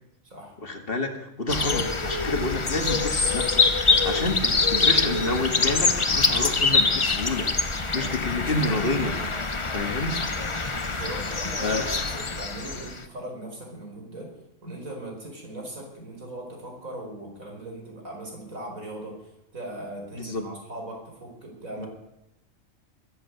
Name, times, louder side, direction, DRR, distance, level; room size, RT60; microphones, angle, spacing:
voice 1, 0.6-7.5 7.9-9.2 9.7-10.2 11.6-11.8 20.2-20.4 21.8-21.9, left 2 dB, 45° left, 5 dB, 2.0 m, -29 dB
sound 1, 1.5-13.0, left 3 dB, 25° left, 0.9 m, -24 dB
voice 2, 10.9-14.3 14.6-21.9, right 1 dB, 90° right, 0 dB, 5.3 m, -39 dB
22.0 x 8.0 x 8.0 m, 0.90 s
omnidirectional pair, 1.4 m